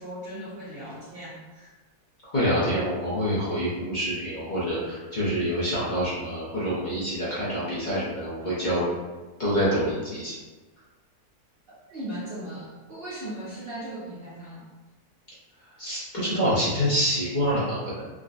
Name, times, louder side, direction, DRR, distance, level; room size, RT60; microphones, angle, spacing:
voice 1, 0.0-1.7 11.9-14.7, right 1 dB, 65° right, -7 dB, 0.6 m, -38 dB
voice 2, 2.2-8.9 9.4-10.3 15.8-18.1, equal, 40° left, -10 dB, 0.7 m, -26 dB
3.6 x 2.2 x 2.5 m, 1.2 s
omnidirectional pair, 1.7 m